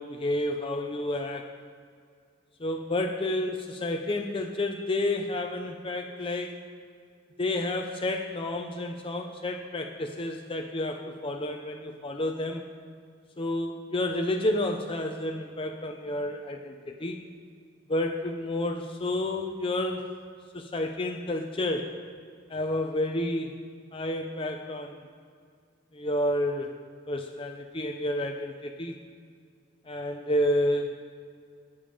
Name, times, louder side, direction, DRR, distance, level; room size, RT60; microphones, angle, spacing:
voice 1, 0.0-1.5 2.6-6.6 7.4-12.7 13.4-17.2 17.9-20.1 20.5-21.9 22.5-23.6 23.9-25.0 25.9-26.7 27.1-29.0 29.9-30.9, left 1 dB, 25° left, 3 dB, 0.7 m, -30 dB
20.5 x 7.2 x 5.1 m, 2.2 s
head